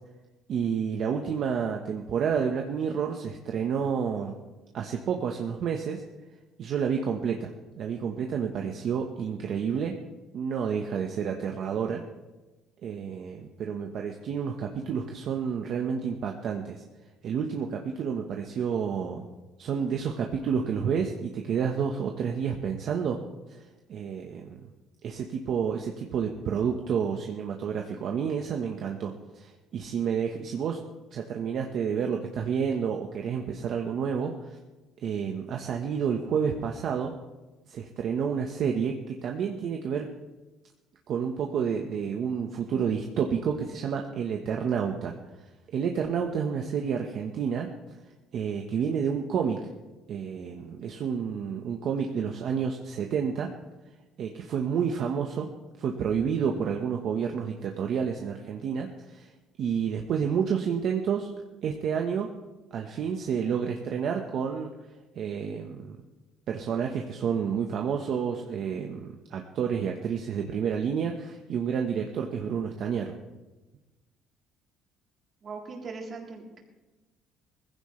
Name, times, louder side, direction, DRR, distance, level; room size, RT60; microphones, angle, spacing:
voice 1, 0.5-4.4 4.7-6.0 6.6-7.5 7.8-9.9 10.3-12.0 12.8-16.8 17.2-19.3 19.6-23.2 23.5-23.6 23.9-24.6 25.0-30.8 31.1-34.6 35.0-37.1 37.7-40.1 41.1-45.1 45.7-47.7 48.3-49.6 50.1-53.5 54.2-55.5 55.8-59.3 59.6-61.3 61.6-62.3 62.7-64.7 65.1-66.0 66.5-73.1, right 7 dB, 55° right, 2 dB, 1.2 m, -29 dB
voice 2, 75.4-76.6, right 4 dB, 35° right, -1 dB, 3.6 m, -39 dB
20.0 x 15.5 x 3.3 m, 1.1 s
cardioid pair, 135°, 0 cm